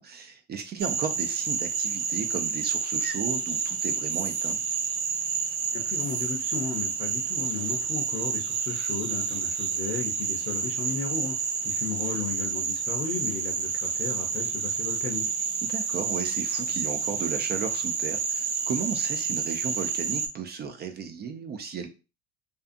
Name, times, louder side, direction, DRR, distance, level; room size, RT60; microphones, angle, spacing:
voice 1, 0.0-4.6 15.7-21.9, right 6 dB, 30° right, 6 dB, 0.4 m, -34 dB
Frog, 0.8-20.3, right 6 dB, 85° right, 0.6 m, -29 dB
voice 2, 5.7-15.3, left 6 dB, 35° left, 3 dB, 0.6 m, -35 dB
2.6 x 2.3 x 2.5 m, 0.30 s
supercardioid pair, 95°, 34 cm